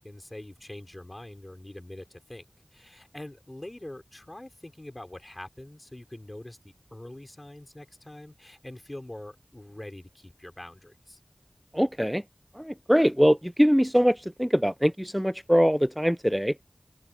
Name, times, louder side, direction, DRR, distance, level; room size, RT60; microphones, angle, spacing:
voice 1, 0.0-2.4 2.7-11.2, left 1 dB, 35° left, 3.9 m, -44 dB
voice 2, 11.7-12.2 12.6-16.5, equal, 5° right, 0.4 m, -22 dB
wide cardioid pair, 45°, 0 cm